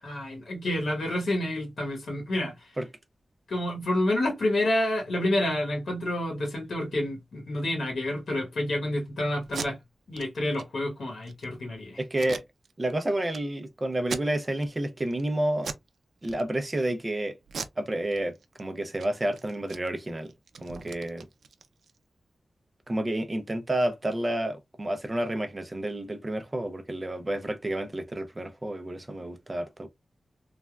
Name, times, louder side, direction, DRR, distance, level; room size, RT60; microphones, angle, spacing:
voice 1, 0.0-2.7 3.5-9.8 10.1-12.0, left 1 dB, 80° left, 1.0 m, -29 dB
Packing tape duct tape, 9.4-9.7 10.1-10.3 10.5-10.6 11.1-11.5 12.1-12.9 13.3-13.4 14.0-14.7 15.1-15.3 15.6-15.9 16.2-16.8 17.5-18.6 18.9-19.1 19.3-22.0, right 5 dB, 90° right, 0.3 m, -39 dB
voice 2, 12.0-12.4 12.8-15.7 16.2-17.4 17.8-20.3 20.6-21.3 22.9-29.9, right 1 dB, 20° right, 0.4 m, -30 dB
3.3 x 2.1 x 2.2 m
wide cardioid pair, 170°, 0 cm